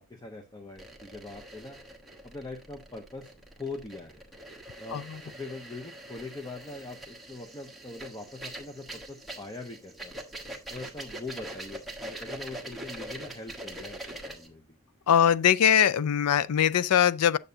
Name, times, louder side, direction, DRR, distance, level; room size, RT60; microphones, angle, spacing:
voice 1, 0.0-1.8 2.2-4.2 4.8-10.1 10.7-14.8, left 3 dB, 20° left, 0.8 m, -42 dB
sound 1, 0.8-14.5, right 1 dB, ahead, 1.2 m, -43 dB
voice 2, 15.1-17.4, left 9 dB, 80° left, 0.4 m, -22 dB
8.9 x 6.7 x 2.8 m
head